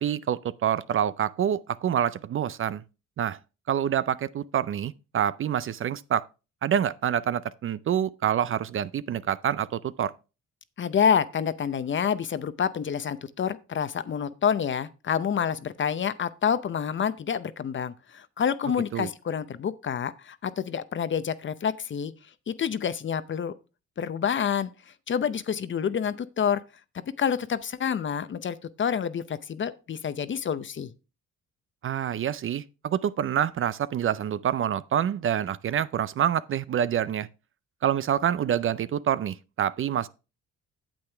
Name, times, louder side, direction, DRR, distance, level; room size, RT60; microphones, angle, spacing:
voice 1, 0.0-2.8 3.2-3.4 3.7-6.3 6.6-10.1 18.9-19.1 31.8-37.3 37.8-40.1, right 9 dB, 45° right, 0.4 m, -27 dB
voice 2, 10.8-22.1 22.5-23.5 24.0-24.7 25.1-26.6 27.2-30.9, left 7 dB, 40° left, 0.7 m, -28 dB
8.8 x 7.9 x 3.4 m
cardioid pair, 90°, 30 cm